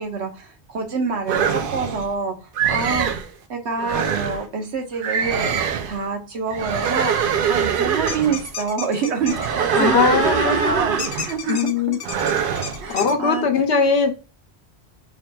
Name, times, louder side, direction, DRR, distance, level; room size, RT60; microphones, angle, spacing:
voice 1, 0.0-2.4 2.7-3.1 3.5-5.6 5.9-11.9 12.8-13.5, right 5 dB, 80° right, 1.2 m, -26 dB
sound 1, 1.3-2.1 2.5-3.3 3.8-4.4 5.0-6.0 6.5-8.5 9.2-11.4 12.0-12.8, right 7 dB, 60° right, 0.6 m, -23 dB
sound 2, 8.1-9.5 11.0-13.1, left 6 dB, 50° left, 0.6 m, -32 dB
voice 2, 9.7-10.9 11.5-12.0 12.5-12.6 12.9-14.1, left 5 dB, 70° left, 1.0 m, -20 dB
4.9 x 2.8 x 2.2 m
omnidirectional pair, 1.1 m